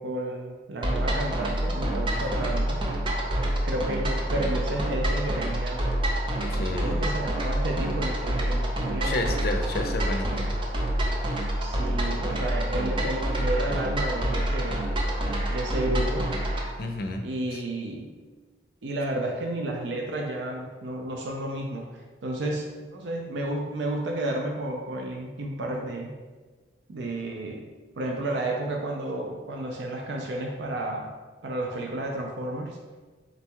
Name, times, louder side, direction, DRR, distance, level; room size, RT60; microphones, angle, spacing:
voice 1, 0.0-2.9 3.4-5.9 6.5-9.2 11.6-14.8 15.5-16.3 17.2-18.2 18.8-26.1 26.9-27.7 28.0-31.1 31.4-32.8, right 1 dB, 90° right, 1 dB, 0.5 m, -32 dB
sound 1, 0.8-16.7, right 1 dB, 30° right, 0.5 m, -27 dB
voice 2, 2.1-2.5 6.5-7.1 9.0-10.5 16.8-17.2 17.5-17.6, left 2 dB, 60° left, 4 dB, 0.5 m, -31 dB
3.9 x 2.3 x 4.4 m, 1.4 s
head